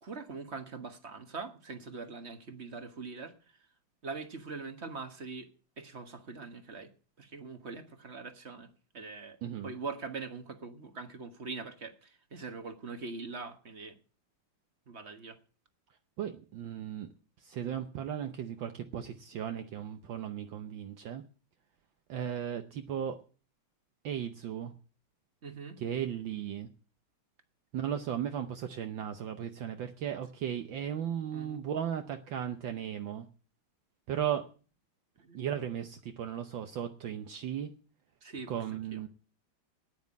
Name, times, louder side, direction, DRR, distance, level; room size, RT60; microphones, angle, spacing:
voice 1, 0.0-3.3 4.0-5.5 5.8-6.9 7.2-8.7 8.9-9.4 9.6-13.9 14.9-15.4 25.4-25.8 31.3-31.6 35.2-35.4 38.2-39.0, right 4 dB, 35° right, 8 dB, 1.4 m, -42 dB
voice 2, 9.4-9.7 16.2-17.1 17.4-21.2 22.1-23.2 24.0-24.7 25.8-26.7 27.7-33.3 34.1-34.4 35.3-37.7 38.5-39.1, right 9 dB, 65° right, 7 dB, 1.5 m, -36 dB
9.5 x 9.4 x 8.4 m, 0.38 s
omnidirectional pair, 2.4 m